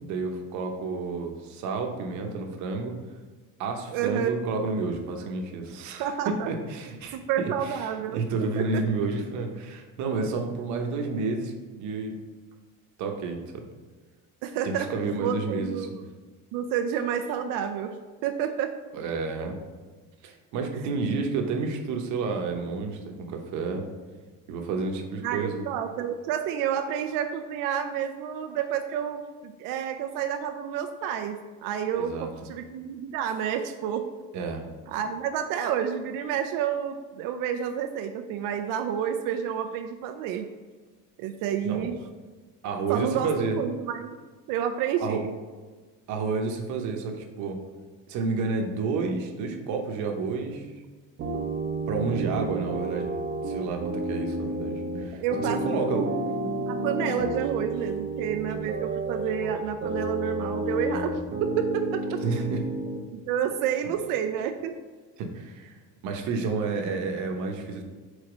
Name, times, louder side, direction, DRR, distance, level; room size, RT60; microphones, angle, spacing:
voice 1, 0.0-3.0 3.6-12.2 13.0-13.7 14.6-16.0 18.9-19.6 20.2-23.9 24.5-25.6 32.0-32.3 34.3-34.7 41.6-41.9 42.6-43.6 45.0-45.2 46.1-47.6 48.1-50.7 51.9-53.2 53.4-56.1 62.2-62.6 65.2-67.8, right 4 dB, 65° right, 3 dB, 0.9 m, -30 dB
voice 2, 3.9-4.4 6.0-6.5 7.1-8.2 8.6-8.8 14.4-14.9 15.2-16.0 16.5-17.9 18.2-18.7 20.7-20.8 25.2-34.1 34.9-40.5 41.2-42.0 42.9-43.3 43.6-44.1 44.5-45.3 55.1-56.3 56.7-62.2 63.1-64.7, right 8 dB, 85° right, 6 dB, 0.5 m, -29 dB
sound 1, 51.2-63.0, right 1 dB, 30° right, 0.7 m, -31 dB
4.9 x 4.2 x 5.1 m, 1.4 s
cardioid pair, 175°, 32 cm